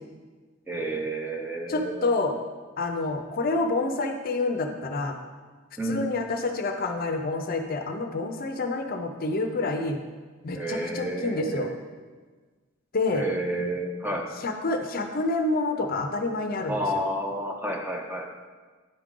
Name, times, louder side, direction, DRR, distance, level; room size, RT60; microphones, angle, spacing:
voice 1, 0.7-2.1 5.8-6.1 10.5-11.7 13.1-14.3 16.7-18.3, right 1 dB, 10° right, 2 dB, 0.5 m, -30 dB
voice 2, 1.7-2.3 2.8-5.2 5.8-10.0 10.4-11.7 12.9-13.3 14.3-17.0, left 3 dB, 45° left, 5 dB, 0.5 m, -28 dB
9.7 x 4.8 x 3.7 m, 1.4 s
head